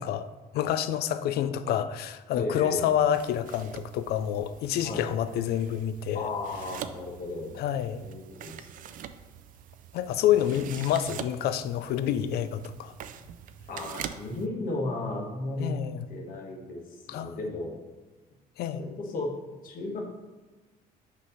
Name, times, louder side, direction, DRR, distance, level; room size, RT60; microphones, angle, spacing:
voice 1, 0.0-6.3 7.6-8.1 9.9-12.9 15.6-16.1 17.1-17.4 18.6-18.8, left 10 dB, 70° left, 12 dB, 0.4 m, -28 dB
voice 2, 2.3-2.9 4.8-5.1 6.1-7.5 7.9-8.8 13.7-17.7 18.7-19.3 19.6-20.0, left 2 dB, 55° left, 0 dB, 1.2 m, -35 dB
sound 1, 3.1-14.5, right 9 dB, 55° right, 0.4 m, -44 dB
6.0 x 2.8 x 5.6 m, 1.2 s
cardioid pair, 110°, 17 cm